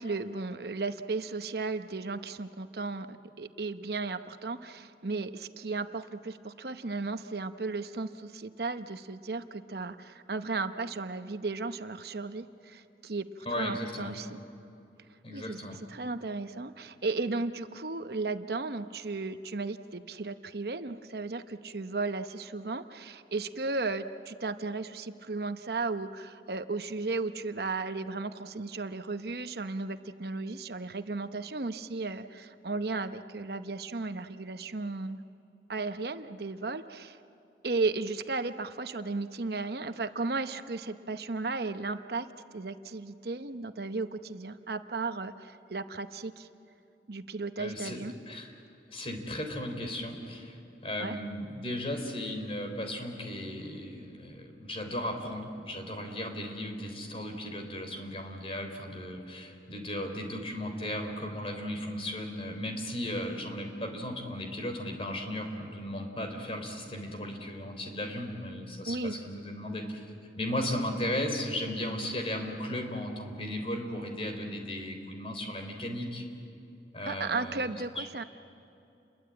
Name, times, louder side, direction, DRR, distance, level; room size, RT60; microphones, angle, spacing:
voice 1, 0.0-14.4 15.3-15.6 15.9-35.2 35.7-37.2 37.6-42.3 42.5-46.5 47.1-48.1 51.0-51.2 68.9-69.4 77.1-78.2, right 3 dB, 65° right, 9 dB, 0.9 m, -35 dB
voice 2, 13.5-14.1 15.2-15.8 47.6-48.0 48.3-48.5 48.9-70.0 70.4-76.2 76.9-78.0, left 1 dB, 30° left, 4 dB, 3.7 m, -36 dB
29.5 x 22.5 x 8.8 m, 2.8 s
head